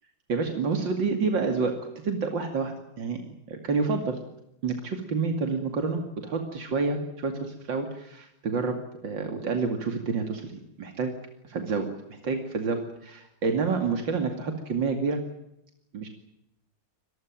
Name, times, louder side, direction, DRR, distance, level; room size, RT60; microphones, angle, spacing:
voice 1, 0.3-1.8 2.0-3.2 3.5-4.2 4.6-8.8 9.0-11.1 11.4-15.2 15.9-16.1, right 4 dB, 90° right, 5 dB, 3.1 m, -28 dB
25.0 x 20.5 x 7.6 m, 0.83 s
omnidirectional pair, 1.9 m